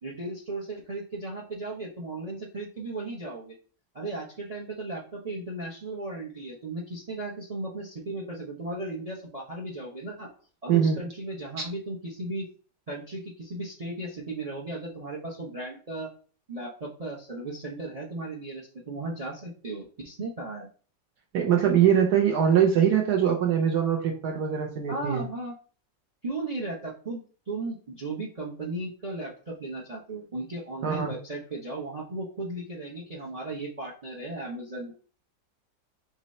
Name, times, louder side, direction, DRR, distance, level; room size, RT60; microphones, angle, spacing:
voice 1, 0.0-3.5 3.9-10.3 10.6-12.5 12.9-16.1 16.5-20.7 24.9-25.5 26.2-27.2 27.5-34.9, right 2 dB, 50° right, -2 dB, 0.4 m, -36 dB
voice 2, 21.3-25.2 30.8-31.1, right 8 dB, 70° right, 1 dB, 1.2 m, -22 dB
3.9 x 3.1 x 4.2 m, 0.40 s
omnidirectional pair, 2.0 m